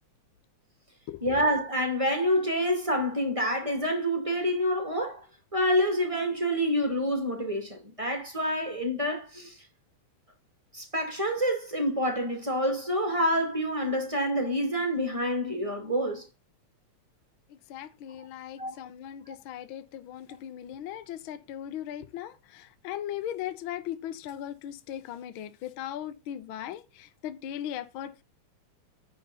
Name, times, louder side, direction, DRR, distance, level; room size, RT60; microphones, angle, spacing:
voice 1, 1.2-5.2 5.5-9.6 10.7-16.3 18.6-18.8, equal, 10° right, 2.2 m, -27 dB
voice 2, 17.5-28.2, left 11 dB, 85° left, 1.1 m, -38 dB
9.7 x 5.1 x 5.5 m
omnidirectional pair, 3.4 m